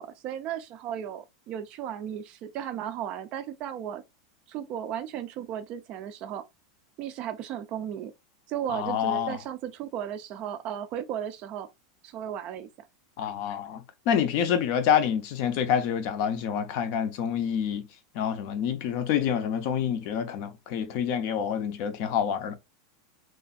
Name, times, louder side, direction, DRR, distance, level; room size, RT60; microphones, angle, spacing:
voice 1, 0.0-4.0 4.5-6.4 7.0-8.1 8.5-11.7 12.0-12.7, right 9 dB, 35° right, 0.3 m, -35 dB
voice 2, 8.7-9.4 13.2-17.9 18.1-22.5, left 8 dB, 50° left, 0.5 m, -27 dB
2.9 x 2.4 x 2.3 m
supercardioid pair, 155°, 3 cm